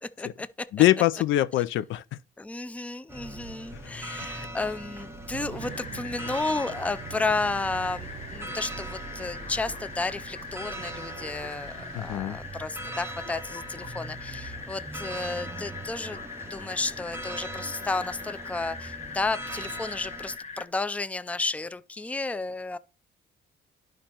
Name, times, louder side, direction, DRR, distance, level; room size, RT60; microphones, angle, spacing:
voice 1, 0.0-0.9 2.4-22.8, left 3 dB, 5° left, 0.4 m, -32 dB
voice 2, 0.7-2.2 3.7-4.1 11.9-12.4, left 15 dB, 80° left, 0.4 m, -24 dB
sound 1, 3.1-20.4, right 1 dB, 15° right, 0.7 m, -41 dB
sound 2, 5.3-12.2, right 10 dB, 85° right, 0.6 m, -44 dB
sound 3, 5.6-20.7, left 5 dB, 35° left, 1.0 m, -42 dB
11.0 x 5.2 x 2.9 m
cardioid pair, 90°, 20 cm